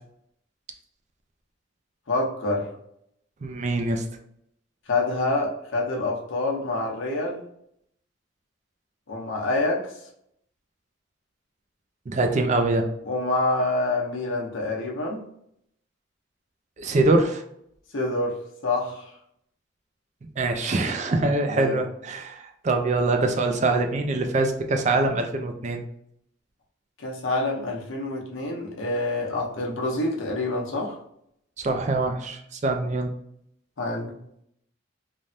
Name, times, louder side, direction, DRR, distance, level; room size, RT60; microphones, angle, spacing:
voice 1, 2.1-2.7 4.9-7.4 9.1-9.9 13.0-15.2 17.9-19.1 21.1-21.8 27.0-31.0 33.8-34.1, left 2 dB, 80° left, -1 dB, 0.8 m, -27 dB
voice 2, 3.4-4.0 12.1-12.9 16.8-17.4 20.4-25.8 31.6-33.1, right 2 dB, 35° right, 5 dB, 0.4 m, -24 dB
3.2 x 2.1 x 2.6 m, 0.73 s
head